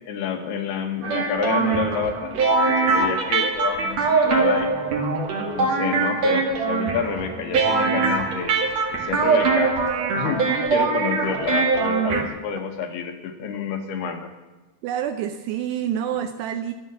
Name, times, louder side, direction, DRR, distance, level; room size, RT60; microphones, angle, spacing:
voice 1, 0.1-2.4 2.7-4.9 5.5-8.5 8.9-9.7 10.1-14.3, left 7 dB, 70° left, 6 dB, 3.1 m, -28 dB
sound 1, 1.0-12.2, right 4 dB, 50° right, 2.3 m, -22 dB
voice 2, 14.8-16.7, right 10 dB, 80° right, 8 dB, 2.6 m, -27 dB
13.0 x 11.0 x 7.2 m, 1.2 s
omnidirectional pair, 5.3 m